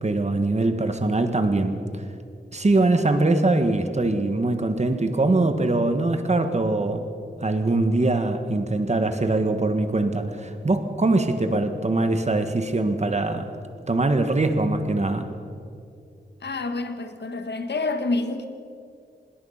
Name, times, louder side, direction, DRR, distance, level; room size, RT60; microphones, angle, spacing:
voice 1, 0.0-2.0 2.5-7.1 7.4-13.5 13.9-15.3, right 2 dB, 40° right, 1.6 m, -22 dB
voice 2, 16.4-18.5, left 3 dB, 70° left, 1.7 m, -28 dB
25.0 x 21.0 x 5.8 m
wide cardioid pair, 105°, 18 cm